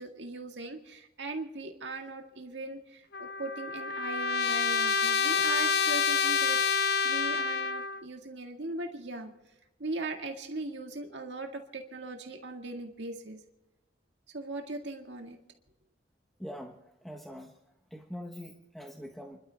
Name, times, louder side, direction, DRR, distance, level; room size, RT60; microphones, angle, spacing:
voice 1, 0.0-9.3 9.8-13.4 14.3-15.4, right 2 dB, 75° right, 3 dB, 1.9 m, -39 dB
Trumpet, 3.1-8.0, left 5 dB, 60° left, 0.7 m, -28 dB
voice 2, 16.4-17.5 17.9-19.4, equal, ahead, 1 dB, 1.2 m, -43 dB
30.0 x 12.5 x 3.4 m, 0.96 s
head